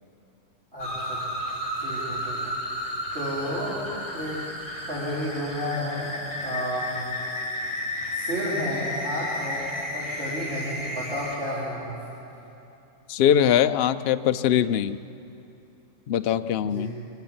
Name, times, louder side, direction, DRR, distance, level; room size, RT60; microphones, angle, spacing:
voice 1, 0.7-1.2 1.8-2.6 3.1-3.8 4.1-7.1 8.1-11.9 16.6-16.9, equal, 40° right, -9 dB, 4.2 m, -32 dB
sound 1, 0.8-11.4, left 1 dB, 25° left, 3.3 m, -32 dB
voice 2, 13.1-15.0 16.1-16.9, left 10 dB, 60° left, 10 dB, 0.6 m, -22 dB
25.5 x 15.5 x 8.7 m, 2.9 s
omnidirectional pair, 1.6 m